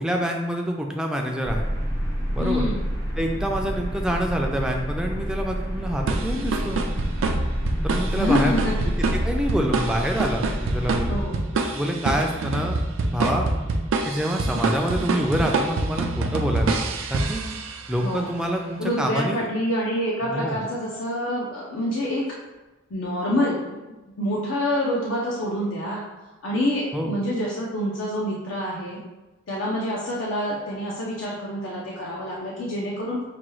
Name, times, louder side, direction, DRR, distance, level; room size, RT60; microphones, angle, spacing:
voice 1, 0.0-1.7 2.3-2.6 3.2-6.8 7.8-8.9 9.2-11.2 11.7-13.5 14.0-16.7 17.1-17.4 17.9-19.5 20.2-20.6 26.9-27.1, equal, 5° right, 1 dB, 0.4 m, -26 dB
sound 1, 1.4-11.3, equal, 50° left, 0.9 m, -28 dB
voice 2, 2.4-2.9 8.1-8.9 11.1-11.4 18.0-18.3 18.8-22.2 22.9-23.8 24.1-26.0 26.4-29.0 29.5-33.2, left 1 dB, 70° left, -4 dB, 0.6 m, -27 dB
sound 2, 6.1-18.0, right 3 dB, 85° right, 0.4 m, -26 dB
5.8 x 2.3 x 3.1 m, 1.1 s
head